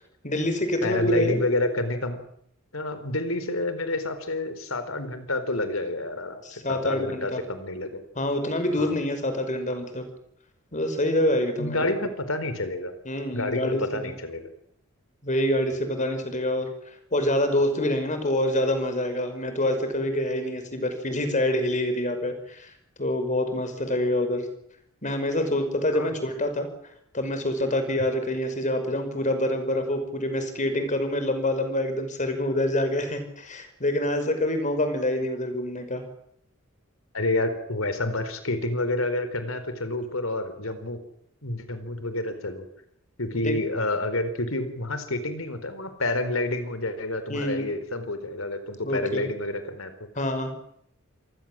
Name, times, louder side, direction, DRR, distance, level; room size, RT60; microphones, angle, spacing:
voice 1, 0.2-1.4 6.4-7.4 8.2-10.1 10.7-11.9 13.1-14.1 15.2-16.7 17.1-22.7 23.0-24.5 25.0-26.7 27.1-36.0 43.4-43.5 47.3-47.7 48.8-49.3 50.2-50.5, left 1 dB, 35° left, 8 dB, 5.5 m, -26 dB
voice 2, 0.8-2.2 2.7-8.0 8.8-8.9 11.6-12.9 13.3-14.5 25.9-26.1 37.1-41.0 41.4-42.6 43.2-49.9, left 2 dB, 80° left, 10 dB, 4.2 m, -29 dB
27.5 x 19.5 x 7.6 m, 0.71 s
head